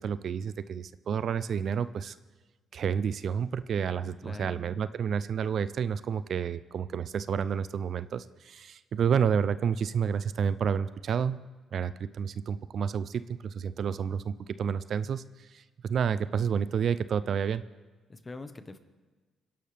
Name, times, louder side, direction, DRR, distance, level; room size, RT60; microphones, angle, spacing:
voice 1, 0.0-2.2 2.7-11.4 11.7-17.6, right 7 dB, 60° right, 15 dB, 0.4 m, -30 dB
voice 2, 4.2-4.6 18.1-18.8, left 3 dB, 25° left, 10 dB, 1.1 m, -43 dB
23.5 x 11.0 x 3.4 m, 1.3 s
cardioid pair, 90°, 0 cm